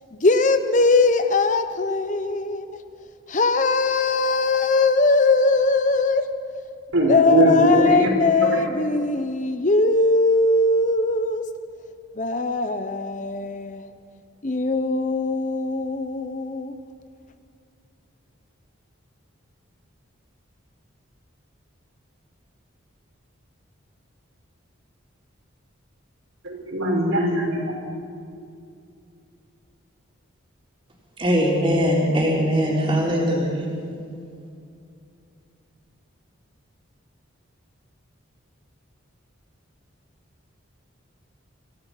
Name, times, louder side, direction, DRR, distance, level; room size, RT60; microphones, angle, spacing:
voice 1, 0.1-2.8 3.3-6.3 7.1-11.4 12.2-13.9 14.4-16.8, left 3 dB, 35° left, 0.8 m, -20 dB
voice 2, 6.9-8.1 8.4-8.6 26.4-27.7, right 1 dB, 80° right, 5.5 m, -21 dB
voice 3, 31.2-33.7, equal, 25° right, 4.0 m, -21 dB
27.0 x 17.0 x 5.9 m
head